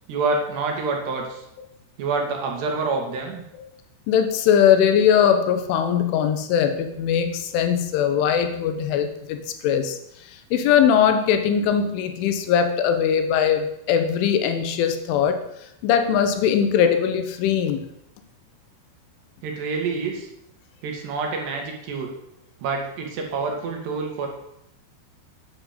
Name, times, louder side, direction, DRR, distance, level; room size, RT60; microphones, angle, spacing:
voice 1, 0.1-1.4 2.0-3.5 19.4-20.3 20.8-22.1 22.6-24.3, right 4 dB, 65° right, 2 dB, 4.1 m, -27 dB
voice 2, 4.1-10.0 10.5-15.4 15.8-17.8, left 8 dB, 80° left, 8 dB, 3.7 m, -20 dB
11.0 x 10.0 x 7.6 m, 0.78 s
omnidirectional pair, 5.6 m